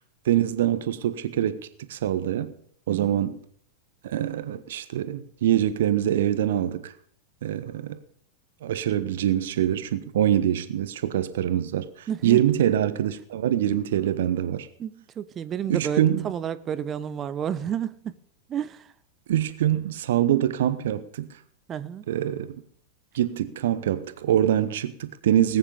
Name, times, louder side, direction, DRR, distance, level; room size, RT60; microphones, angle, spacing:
voice 1, 0.2-2.5 2.9-3.4 4.0-6.9 7.4-8.0 8.6-14.7 15.7-16.2 19.3-21.3 22.1-22.6 23.1-25.6, right 11 dB, 60° right, 1.3 m, -24 dB
voice 2, 2.9-3.2 12.1-12.4 14.8-18.2 18.5-18.9 21.7-22.1, right 8 dB, 25° right, 0.9 m, -31 dB
19.5 x 9.6 x 5.3 m
figure-of-eight pair, 90°, 0 cm